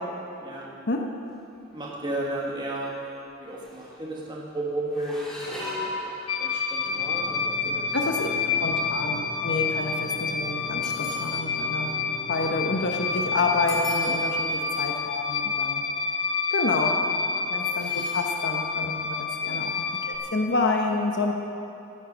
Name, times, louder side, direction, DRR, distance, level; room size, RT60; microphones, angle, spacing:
sound 1, 1.6-2.0 2.3-2.6 3.3-3.4 3.6-4.1 4.9-7.0 7.7-8.0 8.7-13.1 13.5-14.5 15.1-15.2 15.5-15.8 17.6-18.4 18.7-18.8 20.2-20.3, left 1 dB, ahead, 2.0 m, -40 dB
voice 1, 1.7-3.0 3.4-5.6 6.4-7.9 8.4-8.8 10.1-10.3 14.5-14.8 17.3-17.5 18.0-18.1 19.4-19.7, right 1 dB, 25° right, -4 dB, 1.6 m, -34 dB
sound 2, 6.3-20.2, left 5 dB, 90° left, 1.2 m, -28 dB
sound 3, 6.8-13.9, right 1 dB, 40° left, 1.5 m, -41 dB
voice 2, 7.9-8.3 8.6-12.0 12.3-15.8 16.5-17.0 17.5-21.3, left 3 dB, 60° left, 2 dB, 1.0 m, -28 dB
15.0 x 8.1 x 6.2 m, 2.8 s
head